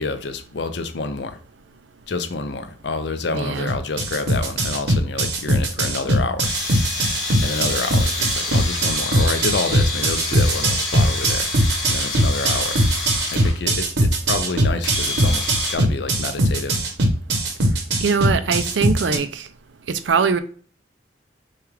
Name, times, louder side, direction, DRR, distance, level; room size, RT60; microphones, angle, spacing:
voice 1, 0.0-1.4 2.1-6.5 7.4-11.5 11.9-12.8 13.3-16.8, left 3 dB, 70° left, 0.6 m, -28 dB
voice 2, 3.3-3.7 18.0-19.5 19.9-20.4, right 5 dB, 90° right, 0.5 m, -21 dB
sound 1, 3.7-19.2, right 1 dB, 70° right, 0.9 m, -20 dB
sound 2, 6.4-13.6 14.5-14.6 14.8-15.8, left 2 dB, 20° left, 1.6 m, -28 dB
6.6 x 2.4 x 3.2 m
head